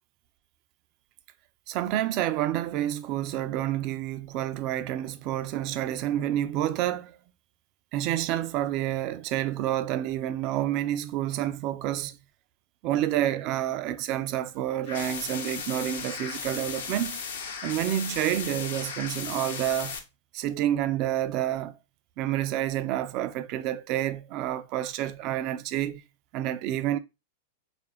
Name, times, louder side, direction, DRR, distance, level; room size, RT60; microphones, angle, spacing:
voice 1, 1.7-7.2 7.9-12.2 12.8-17.2 17.6-20.0 20.3-21.8 22.2-26.0 26.3-27.0, right 12 dB, 40° right, 0.3 m, -29 dB
sound 1, 14.8-20.0, left 6 dB, 60° left, 0.7 m, -36 dB
3.3 x 2.4 x 2.9 m
figure-of-eight pair, 95°, 0 cm